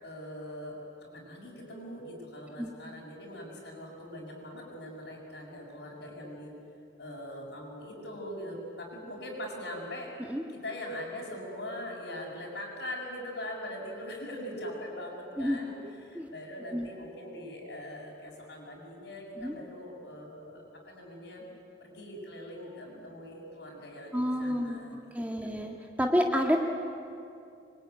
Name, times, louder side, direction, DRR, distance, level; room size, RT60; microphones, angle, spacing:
voice 1, 0.0-6.5 7.0-15.8 16.0-21.4 21.8-25.7, left 1 dB, 65° left, -7 dB, 6.2 m, -42 dB
voice 2, 15.4-15.7 16.1-16.3 16.7-16.9 19.4-19.5 24.1-26.6, equal, 10° right, 1 dB, 1.6 m, -29 dB
27.0 x 23.5 x 9.4 m, 2.5 s
head